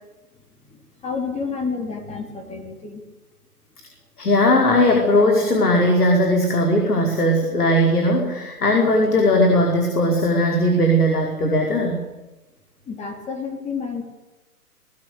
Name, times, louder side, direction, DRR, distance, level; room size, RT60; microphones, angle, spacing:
voice 1, 0.7-3.0 12.9-14.0, left 5 dB, 15° left, 3 dB, 3.2 m, -30 dB
voice 2, 4.2-12.0, left 1 dB, 80° left, 1 dB, 5.3 m, -18 dB
21.5 x 20.0 x 8.3 m, 1.1 s
figure-of-eight pair, 125°, 45 cm